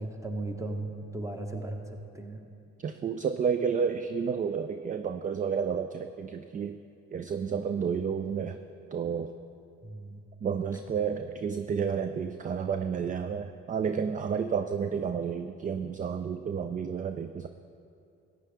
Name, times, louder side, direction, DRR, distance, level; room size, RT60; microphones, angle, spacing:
voice 1, 0.0-2.4 9.8-10.2, right 2 dB, 10° right, 4 dB, 1.2 m, -36 dB
voice 2, 2.8-6.8 7.1-8.6 8.9-9.3 10.4-17.5, right 6 dB, 25° right, 9 dB, 0.4 m, -31 dB
14.5 x 9.0 x 3.5 m, 2.6 s
hypercardioid pair, 60°, 32 cm